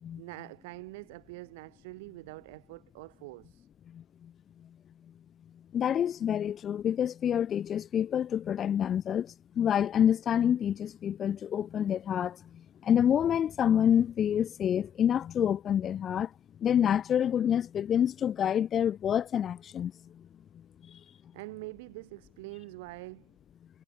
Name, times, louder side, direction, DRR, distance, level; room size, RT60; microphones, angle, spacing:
voice 1, 0.2-3.7 21.3-23.3, right 23 dB, 60° right, 1.9 m, -45 dB
voice 2, 3.9-4.3 5.7-16.3 16.6-20.2 20.8-21.0, left 9 dB, 30° left, 0.6 m, -27 dB
hypercardioid pair, 100°, 0 cm